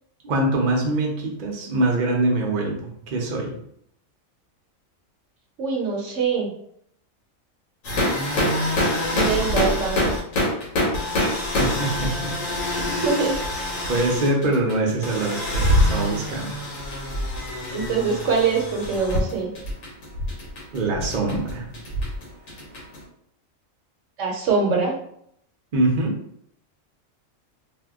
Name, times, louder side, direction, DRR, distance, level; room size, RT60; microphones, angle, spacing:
voice 1, 0.2-3.5 11.2-11.3 11.6-12.4 12.8-13.0 13.9-16.6 20.7-21.7 25.7-26.2, right 2 dB, 50° right, 0 dB, 0.6 m, -24 dB
voice 2, 5.6-6.5 9.1-10.1 12.8-13.6 17.7-19.5 24.2-24.9, right 5 dB, 70° right, 0 dB, 1.0 m, -24 dB
sound 1, 7.8-23.0, left 1 dB, 90° left, 1.3 m, -25 dB
2.7 x 2.2 x 3.4 m, 0.70 s
omnidirectional pair, 1.4 m